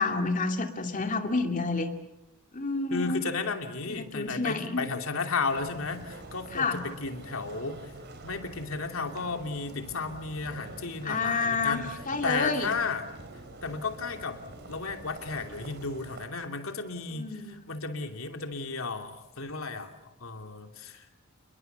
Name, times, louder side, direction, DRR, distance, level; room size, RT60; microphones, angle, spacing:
voice 1, 0.0-1.9 2.5-3.3 3.9-4.8 6.5-6.8 11.0-12.7 17.1-17.6, left 3 dB, 40° left, 5 dB, 2.6 m, -29 dB
voice 2, 2.9-7.9 8.2-11.8 12.2-13.0 13.6-14.4 14.7-19.9 20.2-21.1, left 4 dB, 75° left, 5 dB, 2.9 m, -33 dB
sound 1, 5.5-16.3, right 1 dB, 55° right, 3.8 m, -46 dB
29.5 x 21.5 x 6.9 m, 0.93 s
head